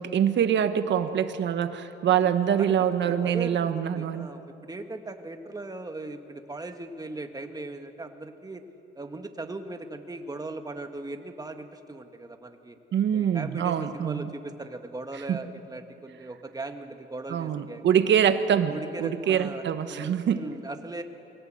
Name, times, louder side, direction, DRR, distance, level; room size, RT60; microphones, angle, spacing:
voice 1, 0.0-4.3 12.9-14.3 15.3-15.4 17.3-20.4, right 8 dB, 65° right, 10 dB, 1.3 m, -25 dB
voice 2, 2.6-8.6 8.9-12.8 13.1-17.9 18.7-21.0, right 2 dB, 20° right, 6 dB, 1.7 m, -39 dB
23.5 x 17.5 x 7.8 m, 2.8 s
cardioid pair, 90°, 20 cm